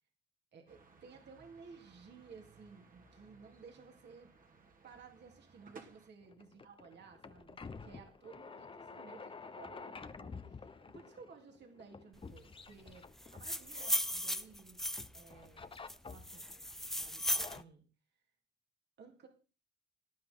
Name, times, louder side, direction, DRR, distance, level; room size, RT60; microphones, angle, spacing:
voice 1, 0.5-4.3 4.8-14.8 15.1-15.7 16.0-16.5 17.0-17.9 18.1-18.2 19.0-19.3, right 5 dB, 60° right, 2 dB, 3.5 m, -56 dB
sound 1, 0.7-6.1, right 4 dB, 45° right, 2.5 m, -60 dB
sound 2, 6.2-14.6 15.0-16.6 17.1-17.6, left 4 dB, 25° left, 1.0 m, -50 dB
sound 3, 13.2-15.3 15.9-17.6, equal, ahead, 0.6 m, -36 dB
18.5 x 12.0 x 4.0 m, 0.35 s
cardioid pair, 90°, 20 cm